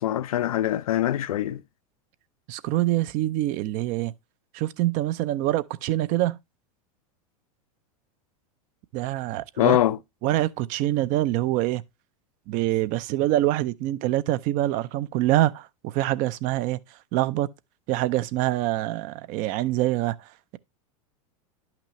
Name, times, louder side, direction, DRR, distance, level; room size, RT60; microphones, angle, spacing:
voice 1, 0.0-1.6 9.6-10.0, left 12 dB, 85° left, 0.5 m, -23 dB
voice 2, 2.5-4.1 4.5-6.4 8.9-9.8 10.2-11.8 12.5-16.8 17.1-17.5 17.9-20.6, right 15 dB, 50° right, 0.5 m, -25 dB
10.5 x 5.9 x 2.9 m
hypercardioid pair, 110°, 18 cm